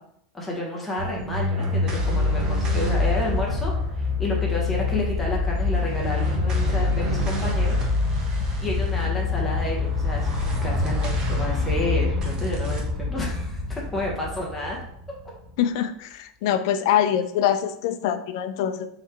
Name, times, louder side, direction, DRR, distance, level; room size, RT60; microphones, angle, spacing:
voice 1, 0.3-7.8 8.6-14.8, left 1 dB, 5° left, -3 dB, 0.8 m, -30 dB
sound 1, 1.0-15.6, left 3 dB, 25° right, 0.9 m, -25 dB
voice 2, 15.6-18.9, left 10 dB, 60° left, 10 dB, 0.4 m, -24 dB
4.0 x 3.1 x 4.2 m, 0.72 s
supercardioid pair, 155°, 3 cm